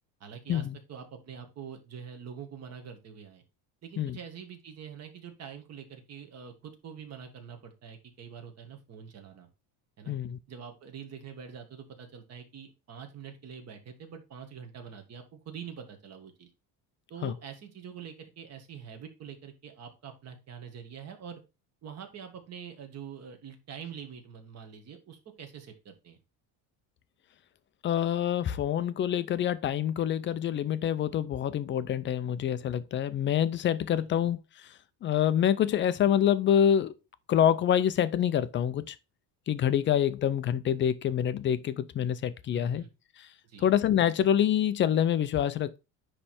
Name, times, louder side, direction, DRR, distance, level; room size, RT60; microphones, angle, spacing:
voice 1, 0.2-3.4 3.8-9.5 10.0-10.1 10.5-16.5 17.1-21.4 21.8-26.2 34.0-34.1 42.5-42.9 43.4-43.7, right 7 dB, 35° right, 1.6 m, -45 dB
voice 2, 10.1-10.4 17.2-17.3 27.8-34.4 35.0-36.9 37.3-39.0 39.5-42.8 43.2-43.3 43.6-45.8, left 9 dB, 30° left, 0.4 m, -26 dB
9.9 x 3.3 x 4.2 m
cardioid pair, 155°, 42 cm